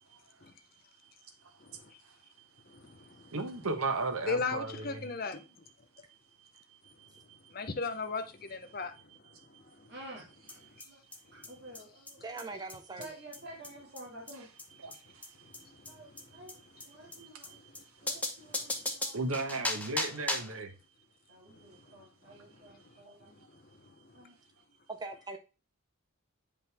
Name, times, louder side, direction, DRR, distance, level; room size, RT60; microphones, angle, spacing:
voice 1, 3.3-5.1 6.5-7.2 9.2-9.4 14.3-14.5 14.8-15.4 16.6-16.9 17.2-17.6 18.2-18.3 18.6-20.7, right 3 dB, 80° right, 1.4 m, -37 dB
voice 2, 4.3-5.4 7.5-8.9, left 4 dB, 45° left, 0.9 m, -35 dB
voice 3, 9.9-10.3 10.9-11.0 11.3-12.6 13.0-14.5 15.9-16.5 16.8-17.6 18.0-19.2 21.3-23.4 24.1-24.3, right 1 dB, 50° right, 2.3 m, -50 dB
sound 1, 10.5-10.6 10.8-10.9 11.1-11.2 11.4-11.5 11.7-11.8 12.1-12.2 12.4-12.5 12.7-12.8 13.0-13.1 13.3-13.4 13.6-13.7 14.0-14.1 14.3-14.4 14.6-14.7 14.9-15.0 15.2-15.3 15.5-15.6 15.8-15.9 16.2-16.3 16.5-16.6 16.8-16.9 17.1-17.2 17.4-17.5 17.7-17.8 18.1-20.6, left 2 dB, 5° left, 0.9 m, -36 dB
voice 4, 12.2-13.1 24.9-25.4, right 3 dB, 20° right, 0.7 m, -41 dB
7.9 x 5.2 x 3.5 m
head